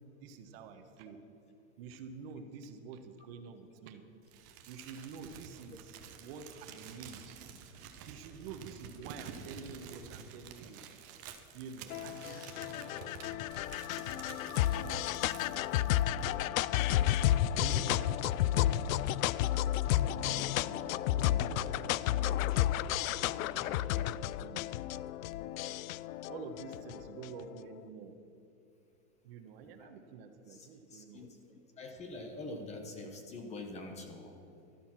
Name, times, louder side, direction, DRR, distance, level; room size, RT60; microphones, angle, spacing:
voice 1, 0.2-1.2 1.8-4.0 4.7-7.4 8.1-10.8 11.5-13.1 14.1-16.6 17.6-22.7 23.5-24.6 26.3-28.2 29.2-31.3, right 5 dB, 45° right, 8 dB, 1.1 m, -49 dB
Crumpling crinkling, 4.3-16.4, right 7 dB, 15° right, 0.3 m, -50 dB
sound 1, 11.9-27.4, left 13 dB, 75° left, 0.5 m, -32 dB
voice 2, 30.5-31.3 31.8-34.4, left 2 dB, 15° left, 5 dB, 0.9 m, -45 dB
13.0 x 12.0 x 6.0 m, 2.7 s
supercardioid pair, 160°, 41 cm